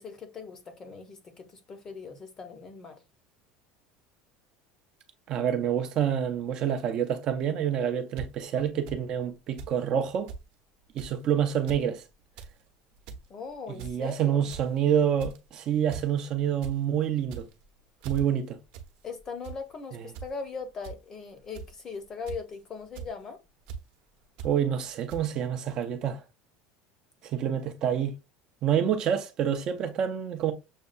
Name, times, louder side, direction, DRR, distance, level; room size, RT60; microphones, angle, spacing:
voice 1, 0.0-3.0 13.3-14.5 19.0-23.4 27.5-27.6, left 5 dB, 20° left, 0.7 m, -40 dB
voice 2, 5.3-10.3 10.9-12.0 13.8-17.5 18.0-18.6 19.9-20.0 24.4-26.2 27.3-28.1 28.6-30.5, right 9 dB, 35° right, 0.5 m, -27 dB
sound 1, 8.2-8.3 8.9-9.0 9.6-9.8 10.0-10.4 11.0-11.2 11.5-11.8 12.2-12.5 12.9-13.2 13.8-14.1 14.5-14.8 15.2-15.5 15.9-16.1 16.4-16.7 17.2-17.6 18.0-18.2 18.7-18.9 19.2-19.6 20.1-20.3 20.8-20.9 21.5-21.8 22.3-22.5 23.0-23.1 23.7-23.8 24.4-24.5 25.1-25.2, right 6 dB, 55° right, 0.8 m, -39 dB
6.4 x 2.3 x 2.4 m
cardioid pair, 175°, 2 cm